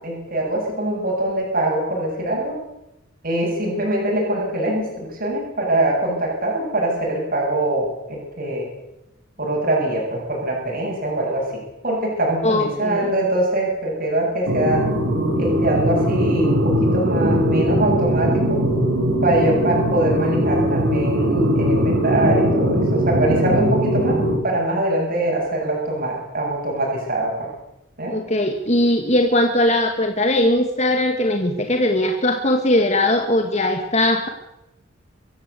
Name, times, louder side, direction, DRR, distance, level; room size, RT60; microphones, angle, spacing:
voice 1, 0.0-2.6 3.2-8.7 9.4-14.9 15.4-18.6 19.2-27.5 28.0-28.2, right 1 dB, 50° right, -2 dB, 7.7 m, -23 dB
voice 2, 12.4-13.1 28.1-34.3, left 1 dB, 35° left, 5 dB, 1.9 m, -19 dB
sound 1, 14.5-24.4, equal, 70° right, 4.6 m, -20 dB
25.0 x 15.0 x 8.4 m, 0.89 s
head